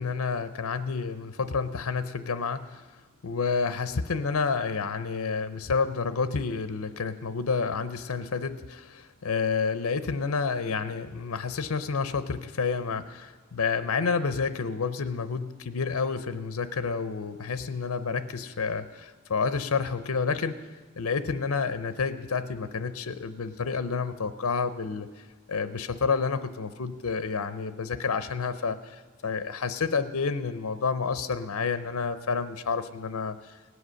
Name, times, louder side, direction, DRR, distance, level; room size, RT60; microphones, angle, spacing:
voice 1, 0.0-2.9 3.2-20.7 21.0-33.5, left 5 dB, 75° left, 12 dB, 0.6 m, -29 dB
18.5 x 8.0 x 6.3 m, 1.3 s
head